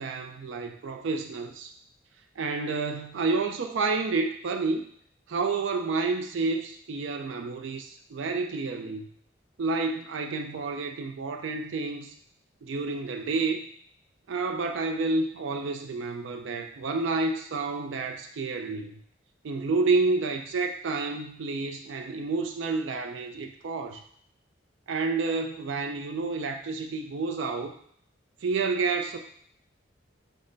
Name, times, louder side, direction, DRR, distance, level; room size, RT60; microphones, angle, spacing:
voice 1, 0.0-1.7 2.4-4.8 5.3-9.1 9.6-12.1 12.6-13.6 14.3-19.0 19.4-24.0 24.9-27.7 28.4-29.2, right 3 dB, 80° right, 5 dB, 0.4 m, -29 dB
5.2 x 2.1 x 3.8 m, 0.65 s
head